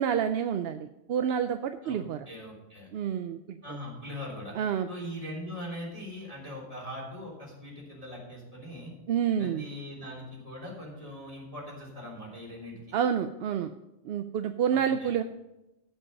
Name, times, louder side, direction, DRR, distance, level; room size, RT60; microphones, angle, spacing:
voice 1, 0.0-2.3 2.9-3.6 4.5-4.9 9.1-9.6 12.9-13.7 14.0-15.2, right 8 dB, 65° right, 8 dB, 0.7 m, -28 dB
voice 2, 2.3-2.9 3.6-4.5 4.9-8.9 9.4-13.0 14.7-15.2, left 1 dB, 30° right, -4 dB, 3.5 m, -41 dB
14.5 x 5.6 x 5.3 m, 0.94 s
omnidirectional pair, 1.3 m